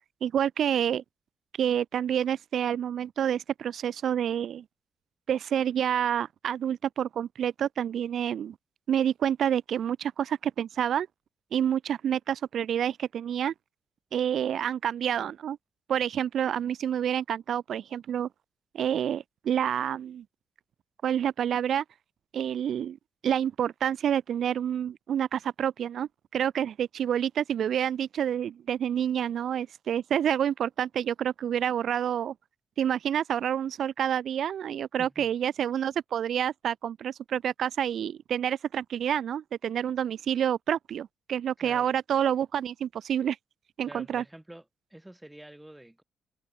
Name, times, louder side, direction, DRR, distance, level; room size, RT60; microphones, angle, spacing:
voice 1, 0.2-1.0 1.6-4.6 5.3-8.5 8.9-11.1 11.5-13.5 14.1-15.6 15.9-18.3 18.7-20.2 21.0-21.8 22.3-23.0 23.2-32.3 32.8-43.4 43.8-44.2, right 9 dB, 65° right, 0.7 m, -28 dB
voice 2, 35.0-35.3 41.6-41.9 43.8-44.6 44.9-46.0, right 1 dB, 5° right, 7.9 m, -47 dB
cardioid pair, 145°, 0 cm